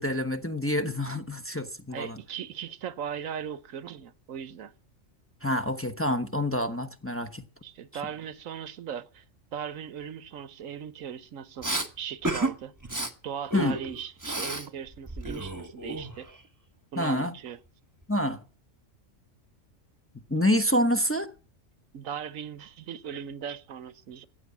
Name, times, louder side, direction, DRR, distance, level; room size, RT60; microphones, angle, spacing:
voice 1, 0.0-2.2 5.4-7.4 13.5-13.8 17.0-17.3 18.1-18.4 20.3-21.3, left 1 dB, 10° left, 1.0 m, -27 dB
voice 2, 1.9-4.7 7.6-9.2 9.5-11.7 12.0-12.7 13.2-16.3 16.9-17.6 21.9-24.3, right 8 dB, 90° right, 1.3 m, -38 dB
Respiratory sounds, 11.6-11.9 12.2-12.5 12.8-13.1 13.5-14.7 14.9-16.4, right 2 dB, 15° right, 1.3 m, -31 dB
15.0 x 8.9 x 8.3 m
omnidirectional pair, 1.3 m